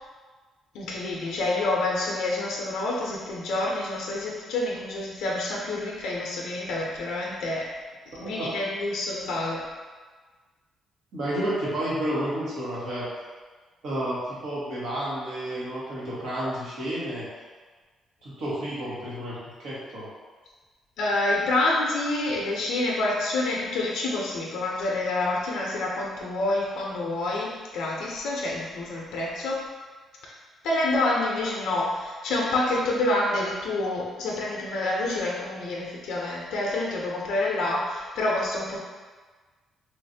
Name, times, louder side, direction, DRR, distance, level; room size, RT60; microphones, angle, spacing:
voice 1, 0.7-7.6 8.2-9.6 21.0-29.6 30.6-38.8, left 2 dB, 85° left, -3 dB, 0.5 m, -27 dB
voice 2, 11.1-13.1 13.8-17.3 18.2-20.1, right 1 dB, 80° right, -8 dB, 1.2 m, -31 dB
3.1 x 2.4 x 2.6 m, 1.4 s
cardioid pair, 90°, 0 cm